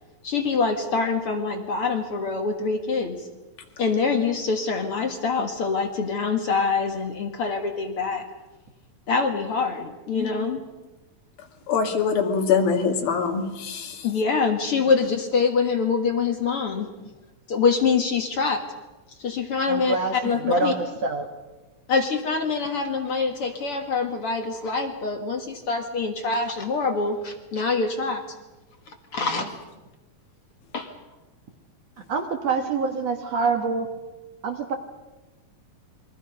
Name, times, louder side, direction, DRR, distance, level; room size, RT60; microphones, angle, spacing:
voice 1, 0.2-3.3 3.8-8.3 9.1-10.6 14.0-16.9 17.5-18.6 19.2-20.0 20.2-20.7 21.9-28.2 28.9-29.5 30.7-30.9, left 4 dB, 50° left, 5 dB, 2.0 m, -25 dB
voice 2, 11.7-14.1, left 6 dB, 80° left, 3 dB, 3.9 m, -23 dB
voice 3, 19.7-21.3 29.2-29.5 32.1-33.9 34.4-34.7, right 4 dB, 55° right, 4 dB, 2.3 m, -26 dB
29.0 x 22.5 x 5.4 m, 1.2 s
omnidirectional pair, 4.1 m